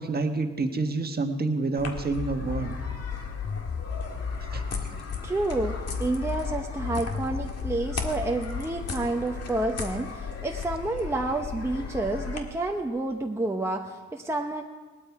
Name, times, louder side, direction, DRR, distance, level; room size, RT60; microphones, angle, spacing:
voice 1, 0.0-2.8 4.5-5.0, right 3 dB, 30° right, 5 dB, 1.4 m, -28 dB
sound 1, 1.8-12.4, left 5 dB, 55° left, 1.8 m, -36 dB
sound 2, 2.2-5.2 5.6-8.6, left 6 dB, 25° left, 0.4 m, -35 dB
voice 2, 5.2-14.6, right 2 dB, 10° right, 2 dB, 0.9 m, -29 dB
19.0 x 11.5 x 4.8 m, 1.3 s
cardioid pair, 90°, 30 cm